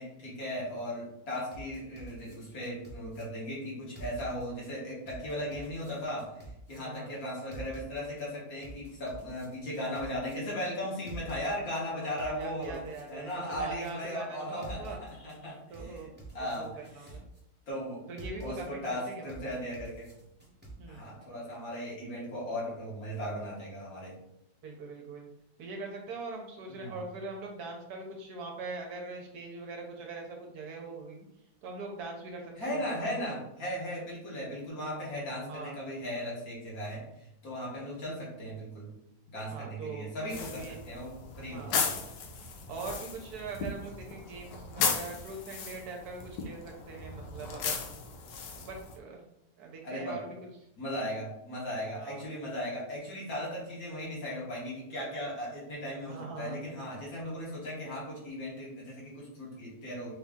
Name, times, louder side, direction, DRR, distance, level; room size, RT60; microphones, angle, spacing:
voice 1, 0.0-6.3 6.7-12.8 13.1-16.0 16.3-17.1 17.7-18.0 18.4-20.1 20.9-24.2 26.7-27.0 32.6-37.0 37.4-38.9 39.3-41.9 49.8-50.2 50.8-60.1, equal, 60° left, -5 dB, 1.8 m, -37 dB
sound 1, 1.5-3.2 4.0-4.7 5.1-6.8 7.5-8.2 8.6-10.3 11.1-11.8 12.2-13.9 14.6-15.4 15.7-17.4 18.2-18.9 19.3-20.7, right 2 dB, 10° right, 0.6 m, -47 dB
voice 2, 6.8-7.1 12.1-15.0 15.7-16.1 16.6-17.2 18.1-19.5 20.8-21.1 24.6-25.3 25.6-31.2 31.6-32.8 35.5-35.7 39.5-40.1 40.6-40.8 41.5-41.7 42.7-47.9 48.5-49.2 49.6-50.3 52.0-52.3 56.1-56.6, right 3 dB, 70° right, 1 dB, 1.1 m, -42 dB
sound 2, 40.3-49.0, left 5 dB, 90° left, 1.3 m, -36 dB
3.8 x 2.7 x 3.5 m, 0.82 s
omnidirectional pair, 1.8 m